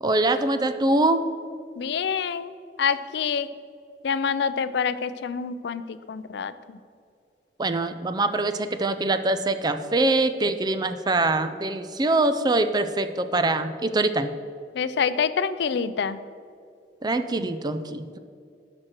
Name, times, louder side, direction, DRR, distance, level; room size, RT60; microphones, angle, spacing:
voice 1, 0.0-1.3 7.6-14.3 17.0-18.2, right 2 dB, 25° right, 10 dB, 0.4 m, -24 dB
voice 2, 1.8-2.5 2.8-3.5 4.0-6.5 14.7-16.2, left 6 dB, 70° left, 14 dB, 0.4 m, -26 dB
11.0 x 6.1 x 4.4 m, 2.3 s
head